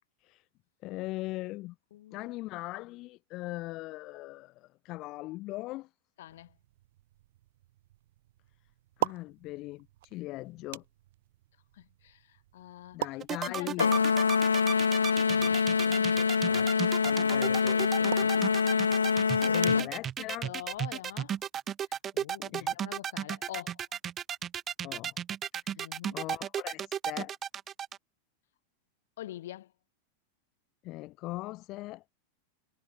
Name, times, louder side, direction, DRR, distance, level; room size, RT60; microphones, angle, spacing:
voice 1, 0.8-1.7 2.1-5.9 9.0-9.9 10.1-10.8 12.9-13.9 15.3-18.5 19.4-20.5 22.5-22.8 24.8-25.2 26.1-27.4 30.8-32.1, left 19 dB, 40° left, 1.3 m, -40 dB
voice 2, 1.9-2.3 6.2-6.6 11.7-13.1 13.5-14.1 16.3-16.7 18.9-19.7 20.2-21.4 22.1-23.8 25.8-26.2 29.2-29.7, left 13 dB, 55° left, 1.6 m, -45 dB
sound 1, 6.3-21.5, right 15 dB, 55° right, 1.7 m, -44 dB
sound 2, 13.2-28.0, right 9 dB, 25° right, 0.6 m, -34 dB
sound 3, 13.8-19.9, left 5 dB, 75° left, 0.4 m, -25 dB
figure-of-eight pair, 90°, 0 cm